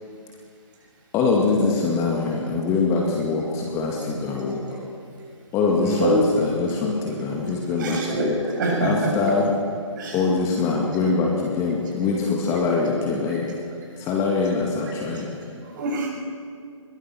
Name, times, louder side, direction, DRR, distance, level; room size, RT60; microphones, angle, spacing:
voice 1, 1.1-4.6 5.5-8.4 8.8-9.5 10.1-13.4 14.0-15.3, left 4 dB, 20° left, -1 dB, 2.3 m, -23 dB
voice 2, 5.8-6.2 7.8-9.1 10.0-10.2 12.1-12.2 12.4-12.6 15.1-15.2 15.7-16.1, right 1 dB, 40° right, -1 dB, 7.5 m, -25 dB
22.0 x 22.0 x 6.1 m, 2.2 s
figure-of-eight pair, 145°, 16 cm